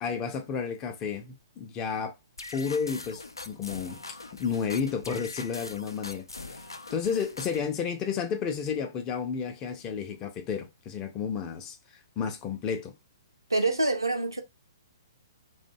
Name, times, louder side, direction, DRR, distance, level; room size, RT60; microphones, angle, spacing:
voice 1, 0.0-2.1 2.5-4.0 4.4-6.6 6.9-11.8 12.2-12.9, left 6 dB, 25° left, 0.5 m, -31 dB
sound 1, 2.4-7.7, left 3 dB, 85° left, 0.4 m, -42 dB
voice 2, 13.5-14.4, right 2 dB, 90° right, 0.6 m, -26 dB
2.6 x 2.1 x 2.6 m
figure-of-eight pair, 125°, 2 cm